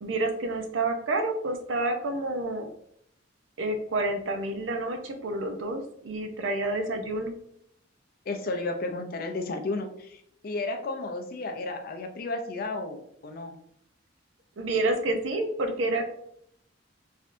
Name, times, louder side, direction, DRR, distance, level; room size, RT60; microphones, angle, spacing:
voice 1, 0.0-2.7 3.6-7.3 14.6-16.0, right 2 dB, 85° right, 5 dB, 0.5 m, -29 dB
voice 2, 8.3-13.5, left 2 dB, 50° left, 6 dB, 0.4 m, -33 dB
3.2 x 2.6 x 2.5 m, 0.70 s
head